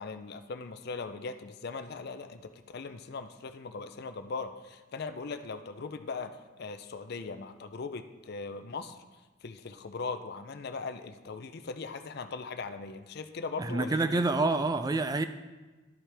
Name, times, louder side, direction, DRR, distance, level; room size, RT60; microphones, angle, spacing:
voice 1, 0.0-9.0 9.4-14.6, left 4 dB, 50° left, 9 dB, 0.4 m, -39 dB
voice 2, 13.6-15.3, right 3 dB, 20° right, 10 dB, 0.3 m, -27 dB
10.5 x 7.3 x 3.4 m, 1.2 s
head